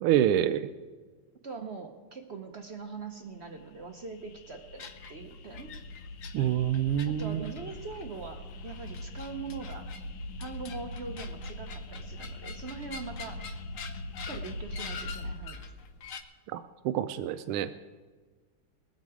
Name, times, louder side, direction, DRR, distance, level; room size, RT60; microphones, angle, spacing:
voice 1, 0.0-0.7 6.3-7.5 16.5-17.7, right 11 dB, 90° right, 11 dB, 1.5 m, -27 dB
voice 2, 1.4-5.7 7.0-9.9 10.4-13.4 14.3-15.6, right 4 dB, 60° right, 4 dB, 0.7 m, -42 dB
sound 1, 3.4-15.4, left 1 dB, 85° left, 1.9 m, -42 dB
sound 2, 4.8-16.2, left 5 dB, 60° left, 0.8 m, -46 dB
21.0 x 8.2 x 4.9 m, 1.4 s
omnidirectional pair, 2.4 m